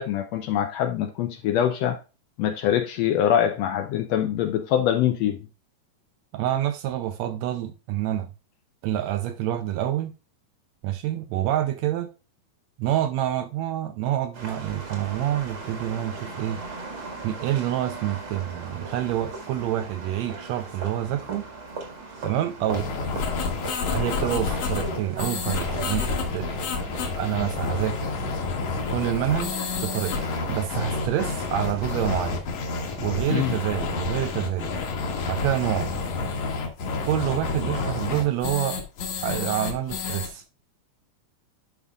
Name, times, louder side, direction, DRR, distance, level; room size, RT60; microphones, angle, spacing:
voice 1, 0.0-2.0 2.4-5.4 33.3-33.6, left 10 dB, 80° left, 1.5 m, -24 dB
voice 2, 6.3-8.3 8.8-10.1 10.8-12.1 12.8-16.6 17.2-21.5 22.2-22.9 23.9-26.9 27.1-28.0 28.9-29.5 29.8-30.2 30.5-32.4 33.0-34.7 35.3-35.9 37.0-38.8 39.2-40.4, right 12 dB, 80° right, 1.6 m, -27 dB
sound 1, 14.3-32.4, right 3 dB, 45° right, 2.2 m, -39 dB
sound 2, 22.7-40.3, left 4 dB, 60° left, 2.2 m, -29 dB
10.5 x 5.5 x 2.3 m
omnidirectional pair, 3.4 m